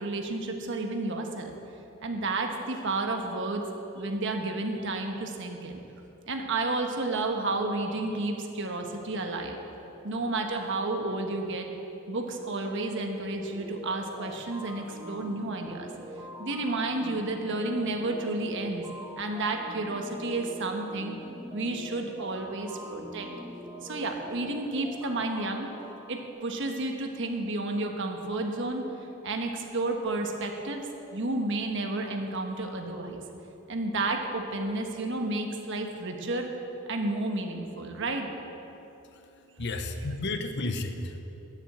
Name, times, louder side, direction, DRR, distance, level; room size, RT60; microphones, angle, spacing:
voice 1, 0.0-1.5 2.0-3.6 3.9-5.8 6.3-9.6 10.0-11.7 12.1-15.9 16.4-18.8 19.2-21.2 21.5-23.3 23.8-25.7 26.1-28.8 29.2-33.2 33.7-36.5 36.9-38.3, right 2 dB, 65° right, 3 dB, 1.3 m, -31 dB
sound 1, 13.4-26.3, equal, 10° right, 1.4 m, -43 dB
voice 2, 39.0-41.2, left 2 dB, 60° left, 7 dB, 0.9 m, -33 dB
11.0 x 7.3 x 7.9 m, 3.0 s
head